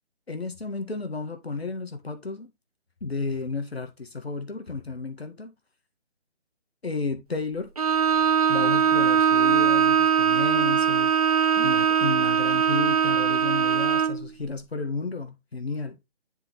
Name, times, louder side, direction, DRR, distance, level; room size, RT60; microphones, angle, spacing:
voice 1, 0.3-2.5 3.0-5.5 6.8-7.7 8.5-11.1 11.6-15.9, left 4 dB, 65° left, 1.7 m, -32 dB
Bowed string instrument, 7.8-14.3, right 7 dB, 35° right, 0.7 m, -21 dB
11.5 x 4.2 x 3.1 m
figure-of-eight pair, 150°, 33 cm